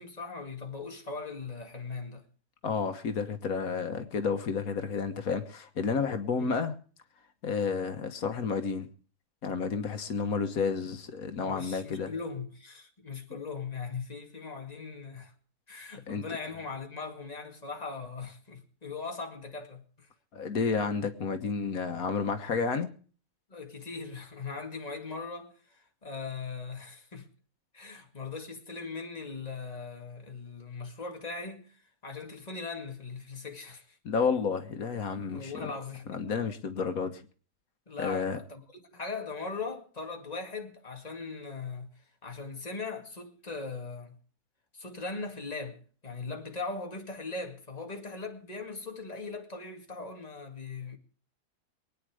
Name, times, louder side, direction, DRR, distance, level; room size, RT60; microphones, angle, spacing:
voice 1, 0.0-2.2 6.4-6.6 11.4-15.3 15.7-20.1 23.5-27.3 27.7-34.0 35.3-36.2 37.9-41.9 42.2-44.2 44.7-51.0, left 4 dB, 30° left, 2.2 m, -40 dB
voice 2, 2.6-6.8 7.4-8.9 9.4-12.1 13.3-13.4 16.1-16.3 20.3-22.9 34.1-35.7 36.1-37.2 38.0-38.4, left 5 dB, 85° left, 1.7 m, -31 dB
24.0 x 9.4 x 4.9 m
omnidirectional pair, 1.5 m